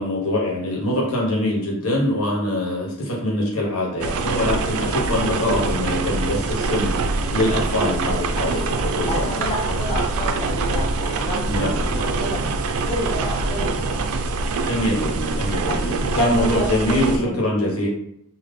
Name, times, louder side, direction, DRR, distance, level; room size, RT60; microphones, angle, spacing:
voice 1, 0.0-6.9 7.2-8.6 9.0-9.3 11.5-11.9 14.7-17.9, left 1 dB, 70° left, -3 dB, 1.2 m, -23 dB
sound 1, 4.0-17.2, right 3 dB, 70° right, 0.3 m, -24 dB
voice 2, 9.0-12.4 12.8-14.0 15.7-17.4, left 1 dB, 25° left, -5 dB, 0.7 m, -29 dB
3.4 x 2.2 x 3.6 m, 0.73 s
head